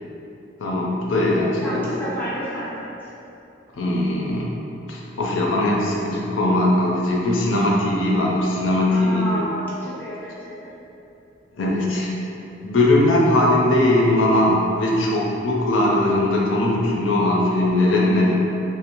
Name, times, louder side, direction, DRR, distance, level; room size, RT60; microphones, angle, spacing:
voice 1, 0.6-2.0 3.7-4.5 4.9-9.4 11.6-12.1 12.6-18.4, left 1 dB, 85° left, -3 dB, 0.4 m, -20 dB
voice 2, 1.6-3.1 8.9-10.8, equal, 10° left, -10 dB, 0.5 m, -31 dB
2.5 x 2.0 x 2.8 m, 2.8 s
head